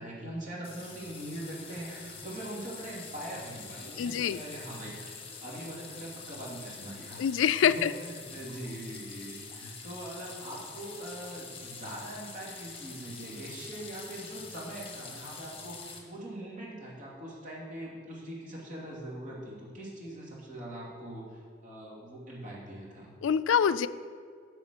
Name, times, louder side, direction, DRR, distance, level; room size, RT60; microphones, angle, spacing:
voice 1, 0.0-23.1, right 1 dB, 40° right, -4 dB, 2.6 m, -42 dB
sound 1, 0.6-16.0, left 4 dB, 30° left, 1.2 m, -46 dB
voice 2, 4.0-4.4 7.2-7.9 23.2-23.9, left 8 dB, 80° left, 14 dB, 0.3 m, -25 dB
9.5 x 4.9 x 6.8 m, 2.2 s
head